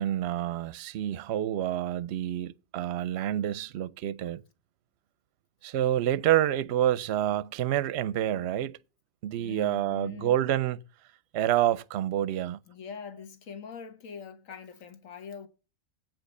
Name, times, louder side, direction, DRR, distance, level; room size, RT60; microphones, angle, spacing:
voice 1, 0.0-4.4 5.6-8.8 9.2-10.8 11.3-12.6, right 12 dB, 60° right, 0.8 m, -28 dB
voice 2, 9.4-10.4 12.7-15.5, left 6 dB, 70° left, 1.7 m, -43 dB
9.0 x 5.2 x 6.5 m
omnidirectional pair, 1.4 m